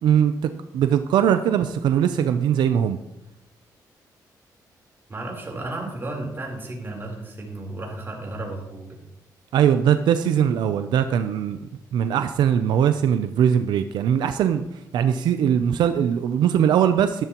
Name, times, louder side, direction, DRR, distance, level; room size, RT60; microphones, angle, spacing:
voice 1, 0.0-3.0 9.5-11.6 11.9-14.6 14.9-17.2, right 9 dB, 90° right, 9 dB, 0.5 m, -20 dB
voice 2, 5.1-8.9, right 2 dB, 30° right, 0 dB, 3.8 m, -33 dB
12.5 x 12.5 x 3.0 m, 0.90 s
cardioid pair, 100°, 7 cm